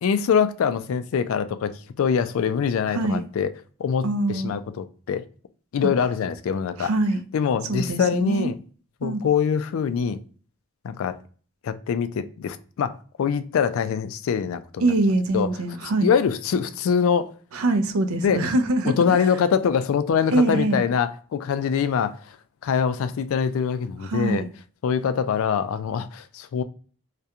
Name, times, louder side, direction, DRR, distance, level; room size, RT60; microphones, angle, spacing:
voice 1, 0.0-3.5 3.8-5.2 5.7-6.9 7.3-8.6 9.0-10.2 10.8-11.2 11.6-14.9 15.3-15.5 16.0-17.3 18.2-18.4 18.9-22.4 22.6-24.4 24.8-26.6, left 7 dB, 75° left, 0.3 m, -24 dB
voice 2, 2.9-3.2 4.0-4.5 6.8-7.2 7.7-8.5 9.0-9.2 14.8-16.1 17.5-19.0 20.3-20.9 24.0-24.5, right 2 dB, 80° right, 0.4 m, -23 dB
2.4 x 2.2 x 2.7 m
head